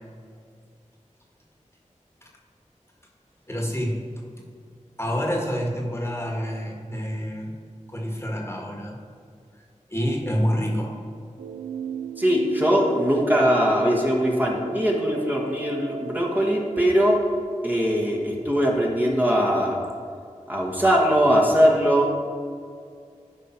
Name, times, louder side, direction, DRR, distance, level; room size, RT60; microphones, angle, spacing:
voice 1, 3.5-4.0 5.0-7.5 7.9-9.0 9.9-10.9, equal, 20° left, -2 dB, 1.7 m, -27 dB
sound 1, 11.4-17.4, right 7 dB, 80° right, 0.5 m, -35 dB
voice 2, 12.2-17.2 17.6-19.8 20.5-22.1, equal, 15° right, -2 dB, 1.5 m, -21 dB
12.0 x 5.1 x 4.5 m, 2.3 s
wide cardioid pair, 45°, 13 cm